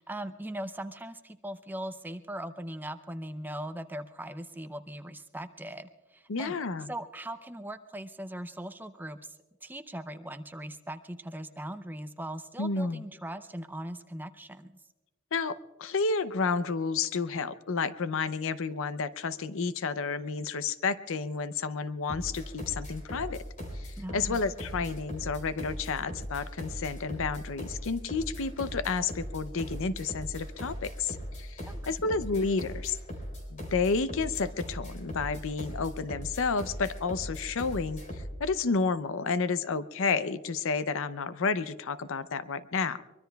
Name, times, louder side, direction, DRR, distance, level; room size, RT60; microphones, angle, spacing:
voice 1, 0.0-6.6 6.9-9.4 9.6-14.7 24.0-24.4 31.6-31.8, right 1 dB, 10° right, 10 dB, 0.5 m, -40 dB
voice 2, 6.3-6.9 12.6-13.0 15.3-23.4 23.8-33.0 33.5-43.0, left 4 dB, 65° left, 13 dB, 0.6 m, -31 dB
sound 1, 22.1-38.4, equal, 35° left, 4.1 m, -39 dB
23.5 x 23.0 x 2.3 m, 1.2 s
head